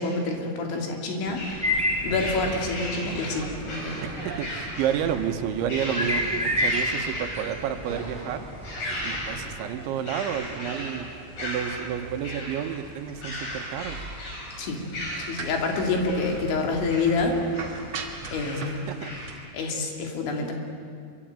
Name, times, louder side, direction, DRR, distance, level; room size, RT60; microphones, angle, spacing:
voice 1, 0.0-1.8 2.0-4.0 14.6-14.8 15.2-17.4 18.3-18.8 19.5-20.5, left 3 dB, 80° left, 2 dB, 5.4 m, -27 dB
sound 1, 1.2-19.4, right 3 dB, 40° right, 2.0 m, -41 dB
sound 2, 1.3-19.3, left 1 dB, 55° left, 7.7 m, -37 dB
sound 3, 1.6-9.6, left 1 dB, ahead, 2.9 m, -31 dB
voice 2, 4.3-8.5 9.0-11.1 11.4-14.1 18.5-19.4, right 9 dB, 85° right, 7 dB, 3.6 m, -30 dB
26.5 x 24.0 x 9.1 m, 2.2 s
omnidirectional pair, 5.2 m